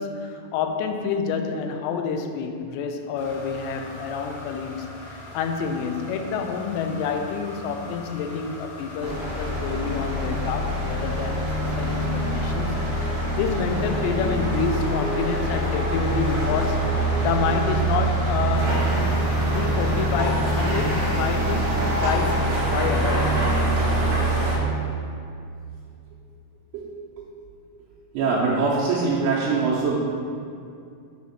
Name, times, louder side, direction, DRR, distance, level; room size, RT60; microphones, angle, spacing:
voice 1, 0.0-18.9 19.5-22.5 22.7-23.4, left 6 dB, 90° left, 6 dB, 2.8 m, -28 dB
sound 1, 3.1-19.7, left 2 dB, 70° left, 1.6 m, -41 dB
sound 2, 9.0-24.6, right 1 dB, 55° right, 2.6 m, -24 dB
voice 2, 28.1-29.9, right 4 dB, 90° right, -7 dB, 3.0 m, -22 dB
7.4 x 3.6 x 5.6 m, 2.4 s
omnidirectional pair, 4.9 m